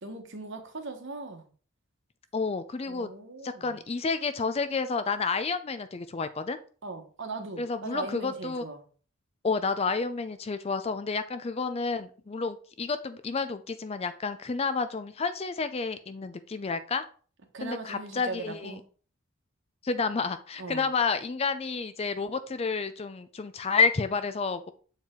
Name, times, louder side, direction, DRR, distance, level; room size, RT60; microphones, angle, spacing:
voice 1, 0.0-1.5 2.9-3.7 6.8-8.8 17.5-18.8 20.6-20.9, right 3 dB, 55° right, 5 dB, 1.2 m, -39 dB
voice 2, 2.3-3.1 3.4-6.6 7.6-8.6 9.4-17.0 17.6-18.8 19.8-24.7, left 4 dB, 25° left, 11 dB, 0.4 m, -30 dB
7.4 x 4.4 x 3.7 m, 0.41 s
head